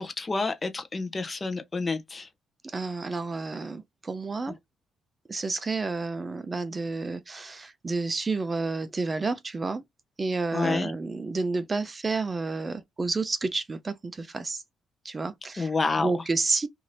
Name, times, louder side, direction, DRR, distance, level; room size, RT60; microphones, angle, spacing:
voice 1, 0.0-2.3 10.5-10.9 15.6-16.1, left 3 dB, 30° left, 0.6 m, -29 dB
voice 2, 2.6-4.6 5.3-9.8 10.2-14.6 15.0-16.7, right 3 dB, 30° right, 0.4 m, -30 dB
2.6 x 2.5 x 3.2 m
cardioid pair, 90°, 0 cm